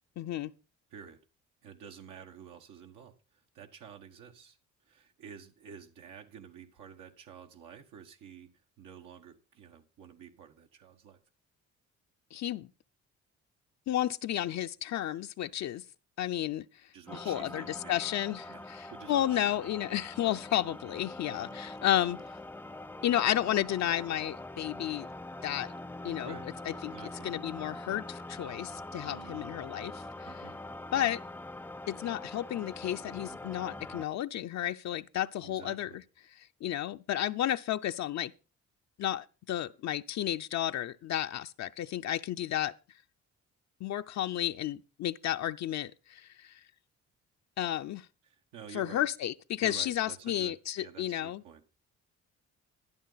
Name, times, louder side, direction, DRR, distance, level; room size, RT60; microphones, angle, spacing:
voice 1, 0.2-0.5 12.3-12.7 13.9-15.8 16.2-22.2 23.0-25.1 25.4-25.7 26.0-26.3 26.8-26.9 27.2-30.3 30.9-31.2 31.9-36.0 36.6-38.3 39.0-42.7 43.8-46.6 47.6-48.1 48.7-51.4, left 12 dB, 65° left, 0.6 m, -32 dB
voice 2, 1.6-11.2 16.9-18.0 18.5-18.6 18.9-19.5 19.8-19.9 21.4-21.7 26.2-26.5 26.8-27.3 28.9-29.6 30.3-30.6 35.4-36.0 48.2-49.1 49.6-51.7, right 7 dB, 90° right, 1.6 m, -50 dB
sound 1, 17.1-34.0, left 2 dB, 5° left, 0.5 m, -44 dB
12.5 x 11.0 x 4.0 m
cardioid pair, 90°, 30 cm